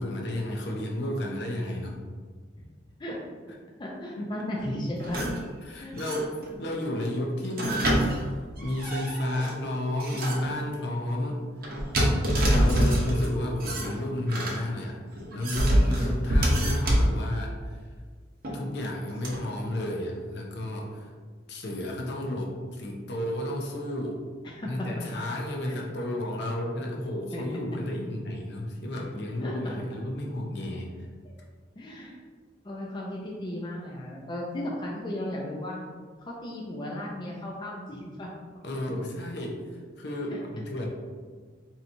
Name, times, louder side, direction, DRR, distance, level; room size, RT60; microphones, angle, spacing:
voice 1, 0.0-2.0 4.2-4.4 5.2-5.4 5.6-7.9 8.6-11.4 12.4-15.0 15.3-17.8 18.5-21.1 21.5-24.2 24.6-30.9 38.6-40.9, left 1 dB, 60° left, 0 dB, 0.7 m, -32 dB
voice 2, 3.8-5.2 5.8-5.9 24.4-24.9 25.7-25.8 27.3-27.4 29.4-29.7 31.2-31.3 31.8-32.2 32.6-35.8 36.2-38.3 40.3-40.4, left 1 dB, 25° left, -4 dB, 0.4 m, -35 dB
sound 1, 5.0-5.4 6.0-6.6 7.4-9.5 10.0-10.5 11.6-13.3 13.6-14.6 15.2-17.2 18.4-18.6 19.2-19.4, equal, 50° right, 0.7 m, -25 dB
4.7 x 2.8 x 2.6 m, 1.5 s
head